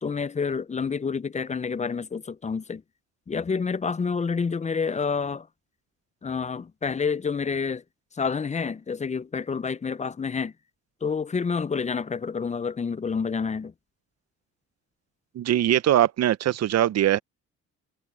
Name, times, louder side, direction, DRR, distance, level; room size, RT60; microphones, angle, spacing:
voice 1, 0.0-2.8 3.3-5.5 6.2-7.8 8.2-10.5 11.0-13.7, left 5 dB, 25° left, 0.6 m, -28 dB
voice 2, 15.3-17.2, right 12 dB, 60° right, 0.7 m, -21 dB
cardioid pair, 90°, 30 cm